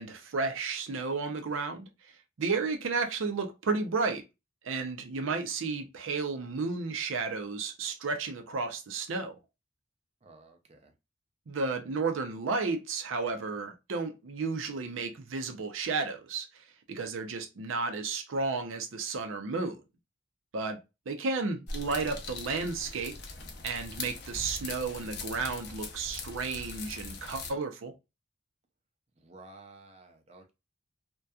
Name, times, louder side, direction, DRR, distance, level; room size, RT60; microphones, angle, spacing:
voice 1, 0.0-4.2 4.6-9.4 11.5-19.8 20.5-20.8 21.1-23.2 23.6-27.9, right 4 dB, 90° right, 0.5 m, -33 dB
voice 2, 10.2-10.9 29.2-30.5, right 2 dB, 35° right, 0.5 m, -53 dB
sound 1, 21.7-27.5, left 3 dB, 55° left, 0.5 m, -41 dB
2.7 x 2.2 x 2.2 m
head